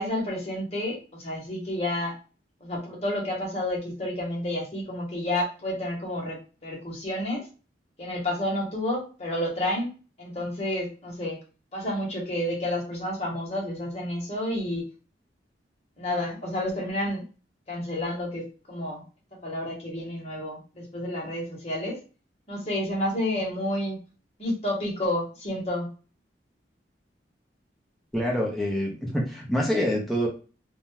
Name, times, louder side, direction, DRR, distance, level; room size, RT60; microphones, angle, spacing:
voice 1, 0.0-2.1 2.6-7.4 8.0-9.9 10.2-11.4 11.7-14.9 16.0-17.2 17.7-19.0 19.4-22.0 22.5-24.0 24.4-25.9, left 1 dB, 35° left, -3 dB, 1.1 m, -30 dB
voice 2, 28.1-30.3, equal, ahead, -2 dB, 0.7 m, -26 dB
2.6 x 2.2 x 3.2 m, 0.35 s
head